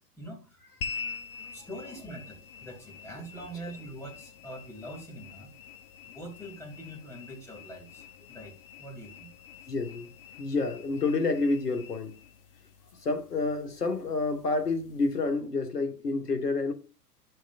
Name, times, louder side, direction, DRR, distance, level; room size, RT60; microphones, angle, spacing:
voice 1, 0.2-0.6 1.5-5.5 6.1-8.5 8.8-9.3, right 1 dB, 5° left, 2.6 m, -43 dB
sound 1, 0.8-15.4, left 6 dB, 35° left, 0.6 m, -46 dB
voice 2, 9.7-10.1 10.4-12.2 13.0-16.7, left 3 dB, 70° left, 1.5 m, -29 dB
11.5 x 6.3 x 2.4 m
figure-of-eight pair, 105°, 48 cm